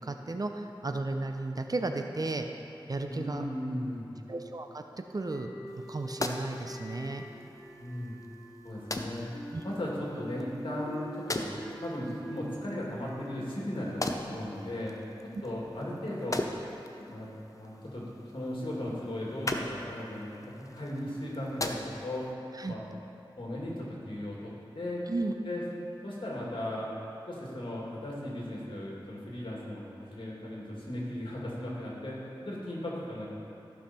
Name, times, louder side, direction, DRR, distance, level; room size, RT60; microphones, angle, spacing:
voice 1, 0.0-2.5 2.9-3.4 4.3-4.8 5.1-5.5 5.9-7.2 9.5-9.6 22.6-22.7 25.1-25.3, right 2 dB, 45° right, 5 dB, 0.6 m, -34 dB
voice 2, 3.1-4.1 7.8-8.2 8.6-9.3 9.6-11.5 11.8-14.9 15.4-16.4 17.0-17.3 17.6-22.2 22.7-22.8 23.4-25.0 25.4-25.6 26.0-26.9 27.3-33.3, left 1 dB, 70° left, -5 dB, 2.3 m, -37 dB
sound 1, 5.3-14.5, equal, 15° left, 1.1 m, -45 dB
sound 2, 5.7-22.3, left 2 dB, 40° left, 0.7 m, -41 dB
14.5 x 5.7 x 4.3 m, 2.9 s
wide cardioid pair, 65°, 9 cm